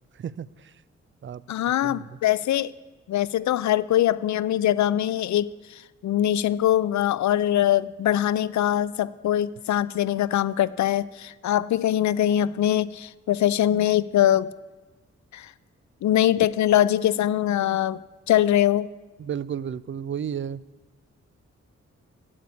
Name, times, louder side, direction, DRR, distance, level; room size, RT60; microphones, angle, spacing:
voice 1, 0.1-0.7 1.2-1.4 1.8-2.2 19.2-20.6, right 8 dB, 40° right, 19 dB, 0.4 m, -33 dB
voice 2, 1.5-2.7 3.1-14.5 15.3-15.5 16.0-18.0 18.3-18.9, left 12 dB, 70° left, 18 dB, 0.5 m, -22 dB
8.7 x 8.3 x 8.3 m, 1.2 s
cardioid pair, 50°, 30 cm